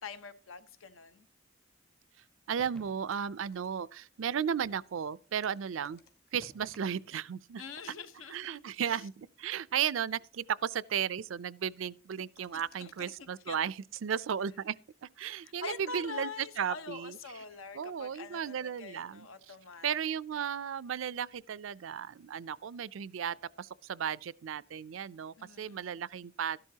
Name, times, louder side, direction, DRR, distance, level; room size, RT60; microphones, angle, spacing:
voice 1, 0.0-1.3 7.6-8.6 12.5-13.6 15.4-19.9 25.4-26.0, left 5 dB, 85° left, 1.1 m, -45 dB
voice 2, 2.5-6.0 6.3-7.6 8.3-14.8 15.0-17.4 17.7-19.5 19.8-26.6, right 8 dB, 75° right, 0.4 m, -35 dB
sound 1, 2.6-2.7 3.1-3.8 4.2-4.5 5.1-6.8 7.8-9.3 9.9-10.5 12.2-14.7, left 5 dB, 55° left, 2.0 m, -65 dB
sound 2, 2.6-3.3 6.4-7.4, equal, 5° left, 0.5 m, -56 dB
13.5 x 11.5 x 2.8 m
head